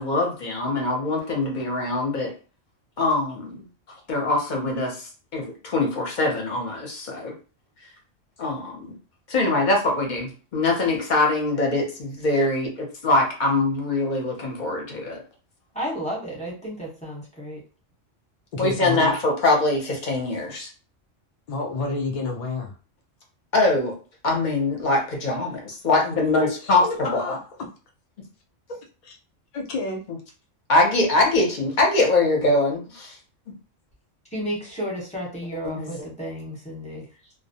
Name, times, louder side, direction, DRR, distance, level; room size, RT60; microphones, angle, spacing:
voice 1, 0.0-2.3 3.0-3.6 4.1-7.3 8.4-8.9 9.3-15.2 18.6-20.7 23.5-24.0 24.2-27.2 30.7-33.2 35.6-35.9, left 2 dB, 50° left, 1 dB, 0.6 m, -23 dB
voice 2, 15.7-17.6 34.3-37.3, equal, 5° left, -5 dB, 0.8 m, -32 dB
voice 3, 18.5-19.1 21.5-22.7 26.6-27.4 29.0-29.2 29.5-30.0, left 3 dB, 90° left, 2 dB, 0.3 m, -29 dB
2.2 x 2.0 x 2.7 m, 0.36 s
omnidirectional pair, 1.3 m